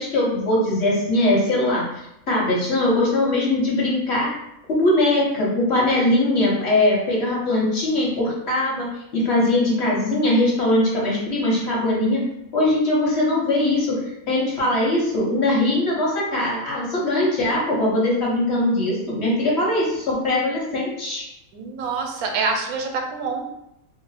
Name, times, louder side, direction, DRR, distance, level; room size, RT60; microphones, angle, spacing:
voice 1, 0.0-1.8 2.3-4.3 4.7-12.2 12.5-14.0 14.3-21.3, left 1 dB, 55° left, -4 dB, 0.9 m, -21 dB
voice 2, 21.5-23.4, right 4 dB, 85° right, 2 dB, 1.0 m, -26 dB
2.5 x 2.0 x 3.9 m, 0.82 s
omnidirectional pair, 1.5 m